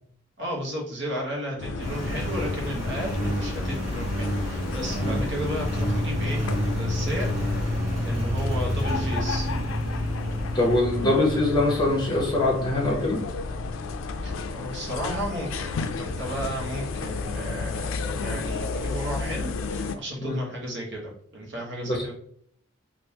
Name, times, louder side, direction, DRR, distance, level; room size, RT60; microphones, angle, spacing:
voice 1, 0.4-7.3 7.7-9.5 11.0-11.1 14.2-15.7 16.0-22.1, equal, 60° right, -2 dB, 1.0 m, -34 dB
sound 1, 1.6-20.0, left 3 dB, 85° left, 0.3 m, -32 dB
Engine, 1.8-11.2, equal, 20° right, 1.4 m, -31 dB
sound 2, 5.6-14.4, left 1 dB, 35° right, 0.6 m, -32 dB
voice 2, 10.5-13.2 20.2-20.4 21.8-22.0, left 2 dB, 20° left, -2 dB, 0.9 m, -23 dB
3.5 x 2.5 x 2.8 m, 0.64 s
head